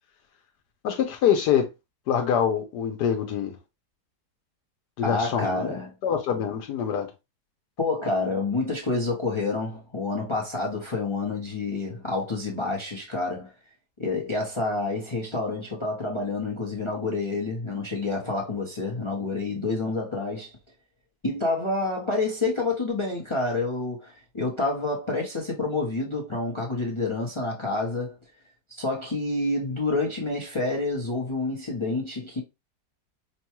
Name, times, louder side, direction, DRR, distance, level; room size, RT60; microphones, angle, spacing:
voice 1, 0.8-1.7 2.1-3.5 5.0-5.8 6.0-7.1, left 8 dB, 80° left, 1.2 m, -25 dB
voice 2, 5.0-6.0 7.8-13.5 14.0-20.6 21.2-28.1 28.7-32.4, left 3 dB, 25° left, 0.7 m, -28 dB
5.3 x 2.2 x 2.9 m
omnidirectional pair, 1.7 m